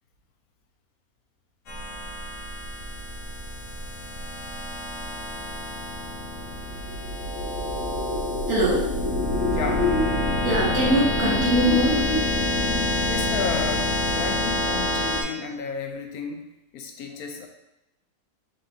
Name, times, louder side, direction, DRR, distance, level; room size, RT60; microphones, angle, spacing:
sound 1, 1.7-15.2, left 1 dB, 65° left, 1.1 m, -27 dB
sound 2, 6.7-13.2, left 2 dB, 40° left, 1.2 m, -30 dB
voice 1, 8.5-9.0 10.4-12.1 13.0-13.1, equal, 85° right, -5 dB, 1.8 m, -23 dB
voice 2, 9.5-9.9 13.1-16.5 16.7-17.5, left 5 dB, 80° left, 4 dB, 1.1 m, -32 dB
4.2 x 3.7 x 2.8 m, 0.89 s
omnidirectional pair, 1.5 m